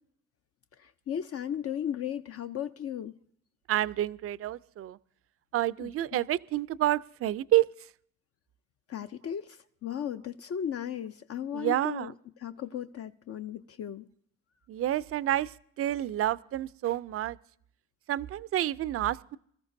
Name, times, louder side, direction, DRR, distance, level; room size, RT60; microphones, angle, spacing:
voice 1, 0.8-3.1 5.8-5.9 8.9-12.1 12.4-14.1, left 9 dB, 50° left, 9 dB, 0.6 m, -36 dB
voice 2, 3.7-5.0 5.5-7.7 11.5-12.1 14.7-17.4 18.1-19.4, right 13 dB, 50° right, 19 dB, 0.4 m, -29 dB
25.0 x 14.0 x 2.7 m, 0.65 s
cardioid pair, 90°, 30 cm